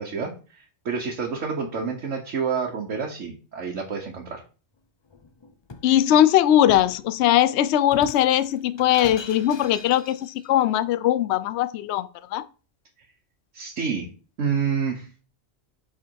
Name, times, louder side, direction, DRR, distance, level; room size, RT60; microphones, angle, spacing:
voice 1, 0.0-4.4 13.5-14.1 14.4-15.1, right 6 dB, 75° right, 1.5 m, -28 dB
Shatter, 5.1-5.9 6.7-7.0 7.9-10.5, left 4 dB, 35° left, 0.5 m, -42 dB
voice 2, 5.8-12.4, left 12 dB, 65° left, 0.8 m, -20 dB
7.6 x 4.8 x 4.6 m
omnidirectional pair, 1.3 m